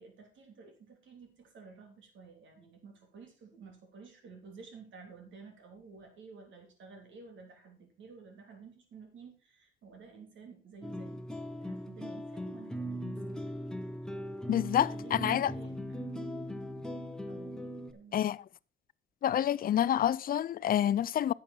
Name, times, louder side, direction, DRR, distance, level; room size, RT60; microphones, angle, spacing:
voice 1, 0.0-11.2 11.5-13.5 14.9-16.1 17.3-17.6 17.9-18.2, right 5 dB, 70° right, 3.4 m, -52 dB
sound 1, 10.8-17.9, equal, 5° left, 1.0 m, -39 dB
voice 2, 14.5-15.5 18.1-18.4 19.2-21.3, left 10 dB, 45° left, 0.4 m, -28 dB
10.5 x 7.6 x 4.4 m
cardioid pair, 90°, 20 cm